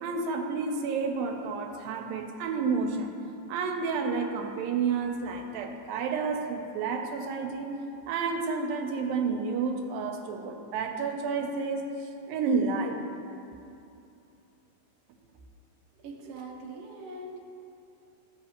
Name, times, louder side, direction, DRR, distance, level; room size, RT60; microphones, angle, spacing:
voice 1, 0.0-3.1 3.5-7.8 8.1-13.0, right 4 dB, 85° right, 4 dB, 2.4 m, -30 dB
voice 2, 16.0-17.4, right 2 dB, 65° right, -2 dB, 1.6 m, -42 dB
14.5 x 5.4 x 2.9 m, 2.7 s
omnidirectional pair, 4.1 m